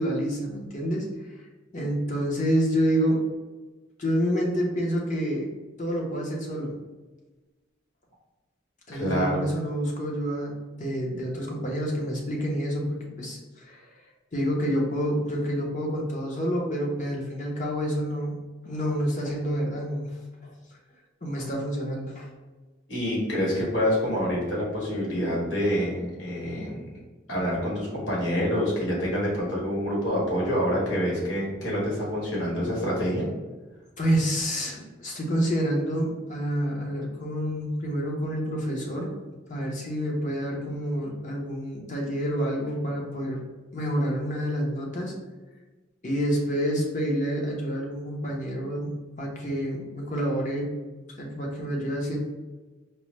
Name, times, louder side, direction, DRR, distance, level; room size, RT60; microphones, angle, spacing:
voice 1, 0.0-1.4 1.7-3.3 4.0-5.5 5.8-6.8 8.9-13.9 14.3-18.3 18.6-20.6 21.2-22.3 34.0-39.1 39.5-43.4 43.7-45.1 46.0-48.9 49.2-50.8 51.2-52.2, equal, 40° left, -1 dB, 0.8 m, -28 dB
voice 2, 8.9-9.4 22.9-26.9 27.3-33.3, equal, 90° left, -4 dB, 1.5 m, -27 dB
4.5 x 2.1 x 3.1 m, 1.2 s
head